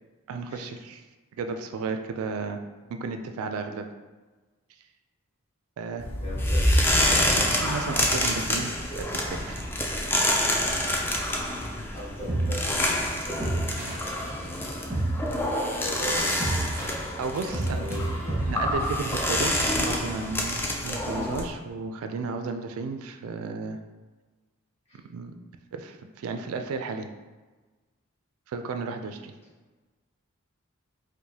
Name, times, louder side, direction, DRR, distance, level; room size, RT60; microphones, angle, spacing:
voice 1, 0.3-1.0 1.3-2.6 2.9-3.9 5.8-6.1 7.3-9.6 17.2-17.8 18.5-23.8 25.1-25.3 25.7-27.1 28.5-29.3, right 4 dB, 80° right, 6 dB, 0.3 m, -33 dB
sound 1, 6.0-21.5, left 1 dB, 10° left, 0.3 m, -27 dB
voice 2, 6.2-6.7 7.0-7.3 11.9-14.0 15.7-16.5 17.4-18.5 24.9-25.0, left 1 dB, 30° left, -8 dB, 1.2 m, -39 dB
sound 2, 12.2-20.3, right 1 dB, 10° right, 0.9 m, -32 dB
4.6 x 2.1 x 2.7 m, 1.3 s
head